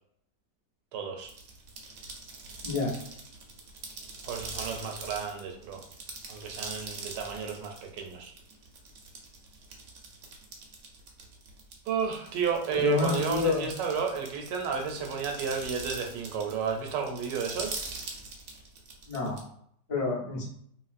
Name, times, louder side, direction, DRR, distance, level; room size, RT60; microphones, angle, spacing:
voice 1, 0.9-1.3 4.2-5.8 6.3-8.3 11.9-17.8, right 6 dB, 80° right, 3 dB, 1.2 m, -32 dB
sound 1, 1.2-19.4, right 3 dB, 65° right, 0.7 m, -42 dB
voice 2, 2.6-3.0 12.8-13.7 19.1-19.4 19.9-20.5, left 3 dB, 40° left, -5 dB, 0.5 m, -28 dB
3.0 x 2.9 x 2.4 m, 0.67 s
omnidirectional pair, 1.9 m